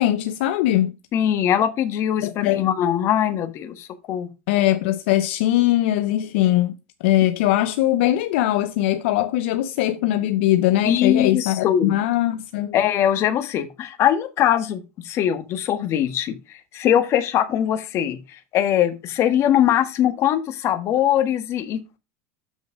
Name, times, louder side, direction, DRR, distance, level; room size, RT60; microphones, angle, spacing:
voice 1, 0.0-0.9 2.2-2.7 4.5-6.8 7.0-12.7, left 14 dB, 70° left, 0.6 m, -21 dB
voice 2, 1.1-4.3 10.8-11.9 12.7-22.0, left 10 dB, 45° left, 1.4 m, -21 dB
7.5 x 6.2 x 4.8 m
supercardioid pair, 110°, 7 cm